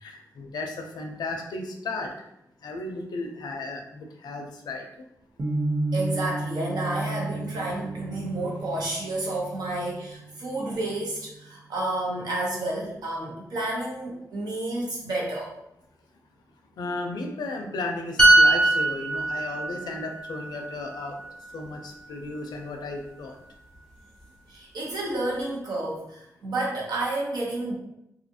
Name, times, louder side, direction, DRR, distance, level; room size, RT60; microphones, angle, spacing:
voice 1, 0.0-2.1 2.6-4.9 16.8-21.2 21.5-23.4, left 2 dB, 90° left, 3 dB, 0.4 m, -34 dB
sound 1, 5.4-11.5, right 2 dB, 40° right, 0.5 m, -33 dB
voice 2, 5.9-15.5 24.5-27.7, right 2 dB, 80° right, -3 dB, 0.9 m, -30 dB
sound 2, 18.2-21.8 22.1-22.4, right 2 dB, 10° left, 0.6 m, -22 dB
2.7 x 2.4 x 2.6 m, 0.82 s
cardioid pair, 80°, 7 cm